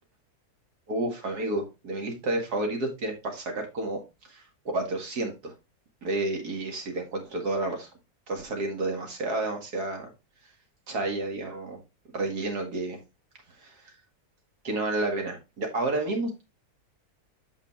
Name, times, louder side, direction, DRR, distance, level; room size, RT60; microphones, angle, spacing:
voice 1, 0.9-4.0 4.3-4.4 4.7-5.5 6.0-7.9 8.3-10.1 10.9-11.8 12.1-13.0 13.6-13.8 14.6-16.4, right 2 dB, 90° right, 3 dB, 2.5 m, -30 dB
8.0 x 5.4 x 3.5 m, 0.26 s
omnidirectional pair, 1.6 m